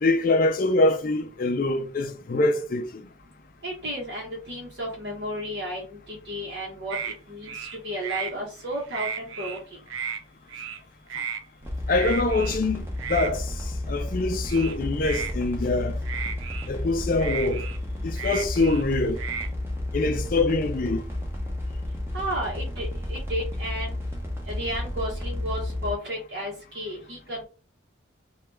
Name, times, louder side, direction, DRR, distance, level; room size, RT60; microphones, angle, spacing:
voice 1, 0.0-2.9 11.9-13.5 13.9-16.0 16.7-17.6 18.0-19.2 19.9-21.0, left 2 dB, 45° left, 0.4 m, -24 dB
voice 2, 3.6-9.8 22.1-24.0 24.5-27.4, equal, 60° right, 0.8 m, -33 dB
sound 1, 6.9-7.2 7.4-8.3 8.7-9.6 9.9-10.2 10.5-10.8 11.1-11.4 11.9-12.6 13.0-13.3 14.5-15.3 16.0-16.7 17.2-18.8 19.2-19.5, right 7 dB, 80° right, 0.4 m, -34 dB
sound 2, 11.6-25.9, left 1 dB, 10° right, 0.7 m, -32 dB
3.2 x 2.3 x 3.2 m
head